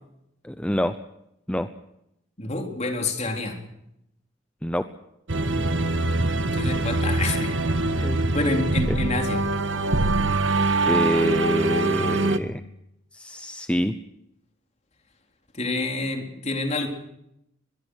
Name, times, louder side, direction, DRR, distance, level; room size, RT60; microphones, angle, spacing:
voice 1, 0.4-0.9 1.5-1.7 4.6-4.8 8.0-8.2 8.9-9.0 10.9-12.6 13.1-13.9, equal, 5° left, 9 dB, 0.8 m, -25 dB
voice 2, 2.4-3.6 6.4-7.6 7.9-8.1 8.3-9.4 15.5-16.9, left 2 dB, 35° left, 3 dB, 4.0 m, -28 dB
sound 1, 5.3-12.4, right 2 dB, 85° right, 1.6 m, -23 dB
22.5 x 22.5 x 6.5 m, 0.80 s
head